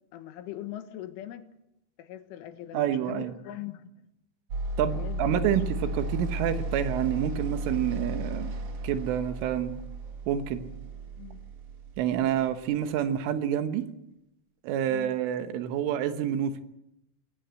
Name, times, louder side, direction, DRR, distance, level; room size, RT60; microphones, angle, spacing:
voice 1, 0.1-1.5 2.0-4.1 4.9-5.4 11.2-11.4 14.9-15.2, left 13 dB, 80° left, 3.8 m, -41 dB
voice 2, 2.7-3.3 4.8-8.5 8.8-9.7 10.3-10.7 12.0-13.8 14.6-16.6, right 10 dB, 80° right, 3.7 m, -28 dB
sound 1, 4.5-12.6, right 1 dB, 60° right, 1.6 m, -34 dB
21.5 x 17.5 x 7.8 m
omnidirectional pair, 5.7 m